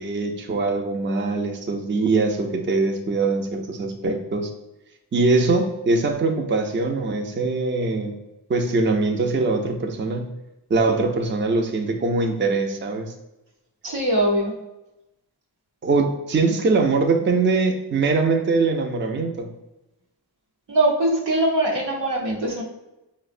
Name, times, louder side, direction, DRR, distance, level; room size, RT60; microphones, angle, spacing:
voice 1, 0.0-4.5 5.1-8.1 8.5-10.3 10.7-13.1 15.8-19.5, right 3 dB, 30° right, 3 dB, 0.4 m, -22 dB
voice 2, 13.8-14.6 20.7-22.6, right 1 dB, 85° right, -1 dB, 0.9 m, -21 dB
4.8 x 2.1 x 2.5 m, 0.96 s
wide cardioid pair, 55°, 42 cm